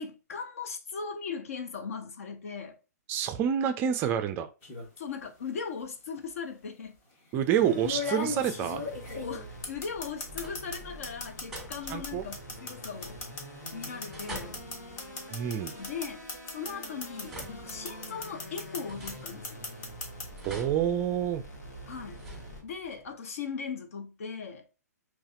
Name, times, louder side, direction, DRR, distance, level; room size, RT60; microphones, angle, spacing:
voice 1, 0.0-2.8 5.0-7.0 9.1-13.2 13.7-14.6 15.8-16.2 16.5-19.6 21.9-22.3 22.6-24.7, left 6 dB, 55° left, 0.8 m, -39 dB
voice 2, 3.1-4.5 7.3-8.8 11.9-12.2 15.3-15.7 20.4-21.4, right 9 dB, 25° right, 0.4 m, -28 dB
sound 1, 4.6-5.0 6.2-6.3 7.8-10.8 11.0-17.4 17.7-18.8 19.1-20.2, left 4 dB, 30° left, 1.2 m, -36 dB
sound 2, 7.6-22.6, equal, 80° left, 1.6 m, -46 dB
sound 3, 9.7-10.1 10.3-10.9 11.5-12.2 12.9-13.6 14.1-16.4 17.0-18.3 18.9-19.8 20.4-21.6 22.1-23.0, right 2 dB, ahead, 1.5 m, -47 dB
5.5 x 3.0 x 2.4 m
figure-of-eight pair, 115°, 9 cm